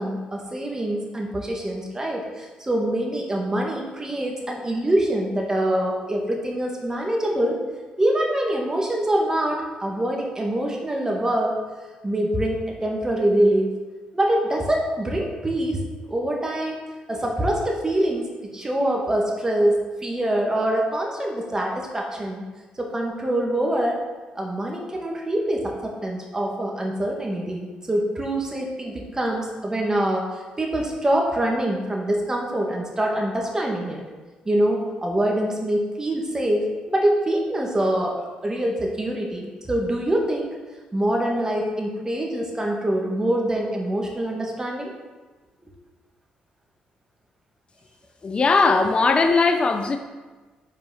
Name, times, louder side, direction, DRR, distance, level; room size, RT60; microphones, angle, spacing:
voice 1, 0.0-7.6 8.0-11.6 12.0-13.7 14.1-15.8 16.1-16.8 17.1-22.4 22.8-24.0 24.4-34.0 34.5-40.5 40.9-44.9 45.6-45.7, right 1 dB, 20° right, 0 dB, 1.7 m, -24 dB
voice 2, 48.2-50.0, left 4 dB, 35° left, 6 dB, 0.6 m, -19 dB
5.9 x 4.5 x 5.6 m, 1.3 s
cardioid pair, 75°, 3 cm